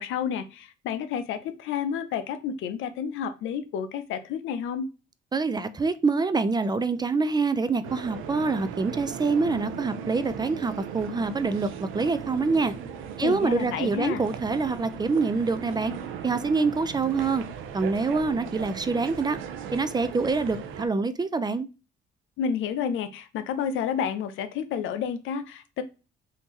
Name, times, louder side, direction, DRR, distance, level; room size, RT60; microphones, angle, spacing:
voice 1, 0.0-4.8 13.2-14.2 22.4-25.8, left 7 dB, 85° left, 0.5 m, -30 dB
voice 2, 5.3-11.7 11.9-12.7 13.2-15.9 16.2-17.4 17.7-19.4 19.7-21.7, right 4 dB, 20° right, 0.4 m, -25 dB
sound 1, 7.8-20.9, right 8 dB, 85° right, 0.5 m, -38 dB
3.6 x 2.7 x 3.0 m
cardioid pair, 90°, 20 cm